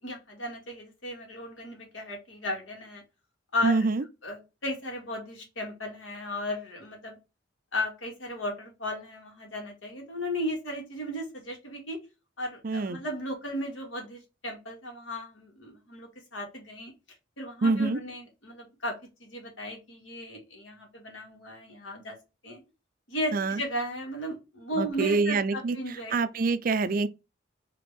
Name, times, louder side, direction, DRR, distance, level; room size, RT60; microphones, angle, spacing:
voice 1, 0.0-3.0 3.5-3.9 4.2-7.2 7.7-12.0 12.4-16.9 17.4-22.2 22.4-22.6 23.1-26.1, left 1 dB, 80° left, 2.2 m, -35 dB
voice 2, 3.6-4.0 12.6-13.0 17.6-18.0 23.3-23.6 24.8-25.8 26.1-27.1, right 3 dB, 45° right, 0.4 m, -25 dB
4.9 x 3.0 x 3.4 m
head